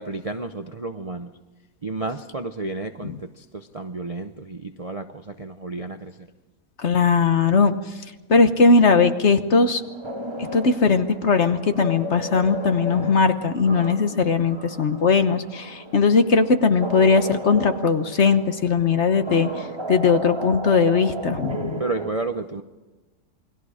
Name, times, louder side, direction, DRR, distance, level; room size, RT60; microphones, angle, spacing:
voice 1, 0.0-1.3 1.8-6.3 21.8-22.6, right 3 dB, 35° right, 6 dB, 0.6 m, -31 dB
voice 2, 6.8-7.7 8.3-9.8 10.5-21.8, left 4 dB, 50° left, 9 dB, 1.2 m, -19 dB
sound 1, 9.8-22.1, right 1 dB, 20° right, 1.3 m, -34 dB
28.5 x 21.5 x 5.0 m, 1.2 s
omnidirectional pair, 1.7 m